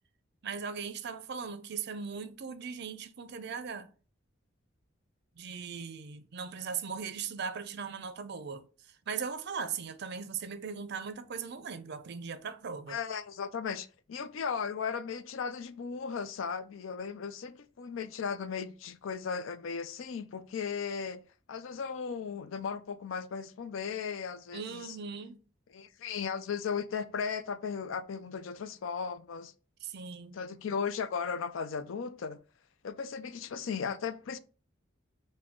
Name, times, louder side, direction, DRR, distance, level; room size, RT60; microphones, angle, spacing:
voice 1, 0.4-3.9 5.4-13.0 24.5-25.4 29.8-30.4, right 6 dB, 60° right, 0.5 m, -39 dB
voice 2, 12.9-21.2 21.5-25.0 25.7-29.5 30.3-32.4 32.8-34.4, left 6 dB, 85° left, 0.4 m, -36 dB
5.9 x 2.2 x 3.6 m
head